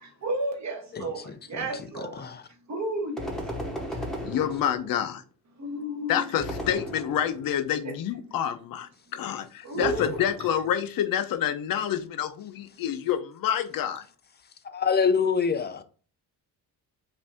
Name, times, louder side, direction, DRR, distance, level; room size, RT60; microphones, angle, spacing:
voice 1, 0.2-2.2 2.7-4.0 5.6-6.3 7.8-7.9 9.6-10.5, right 2 dB, 45° right, 1.1 m, -33 dB
voice 2, 0.9-2.4 14.6-15.8, left 6 dB, 30° left, 0.4 m, -27 dB
sound 1, 3.2-5.1 6.4-7.6 9.8-10.8, equal, ahead, 0.8 m, -36 dB
voice 3, 4.2-5.2 6.1-14.0, left 10 dB, 60° left, 0.7 m, -28 dB
5.4 x 2.6 x 3.4 m
cardioid pair, 150°, 39 cm